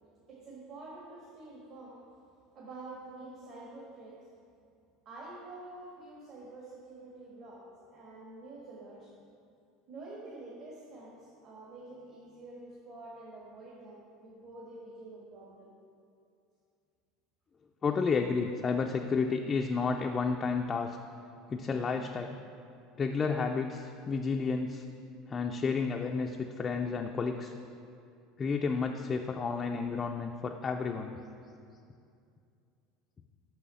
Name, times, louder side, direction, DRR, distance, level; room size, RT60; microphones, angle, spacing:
voice 1, 0.3-2.2 2.5-4.4 5.0-9.2 9.9-15.7, right 2 dB, 50° right, -5 dB, 1.6 m, -48 dB
voice 2, 17.8-21.0 21.5-22.4 23.0-24.8 25.3-27.5 28.4-31.2, left 5 dB, 25° left, 3 dB, 0.3 m, -31 dB
6.3 x 6.2 x 5.5 m, 2.5 s
supercardioid pair, 135°, 0 cm